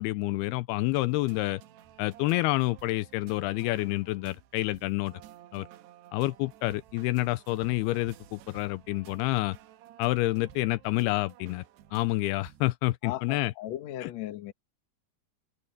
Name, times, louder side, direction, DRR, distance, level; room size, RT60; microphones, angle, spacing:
voice 1, 0.0-1.6 2.0-5.1 5.5-5.7 6.1-9.6 10.0-11.6 11.9-13.5 14.0-14.1, left 19 dB, 80° left, 2.5 m, -28 dB
sound 1, 0.9-12.7, right 12 dB, 85° right, 3.3 m, -53 dB
voice 2, 13.0-14.5, left 13 dB, 65° left, 1.8 m, -37 dB
omnidirectional pair, 4.7 m